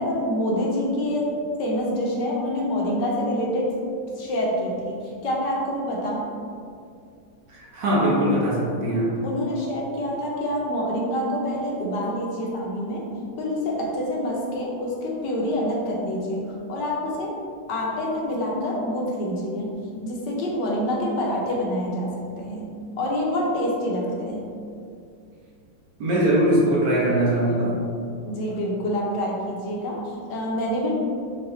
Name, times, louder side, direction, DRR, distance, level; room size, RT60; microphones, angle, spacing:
voice 1, 0.0-3.9 4.2-6.3 9.2-13.1 13.4-16.4 16.7-17.4 17.7-19.8 20.0-22.7 23.0-24.5 28.2-31.0, left 1 dB, 70° left, -2 dB, 1.3 m, -26 dB
voice 2, 7.5-9.2 26.0-27.8, right 1 dB, 70° right, -5 dB, 1.6 m, -21 dB
5.9 x 2.3 x 3.8 m, 2.4 s
omnidirectional pair, 2.0 m